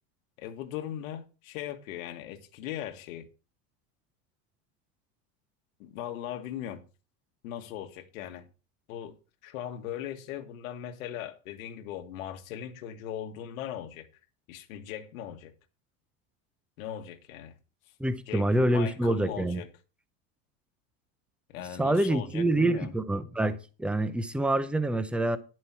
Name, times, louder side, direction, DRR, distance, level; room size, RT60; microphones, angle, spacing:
voice 1, 0.4-3.3 5.8-6.8 7.4-8.5 8.9-9.2 9.4-14.1 14.5-15.5 16.8-17.5 18.3-19.7 21.5-22.9, left 10 dB, 85° left, 1.6 m, -39 dB
voice 2, 18.0-19.6 21.8-25.4, right 1 dB, 5° right, 0.6 m, -26 dB
10.5 x 7.8 x 4.5 m
supercardioid pair, 150°, 40 cm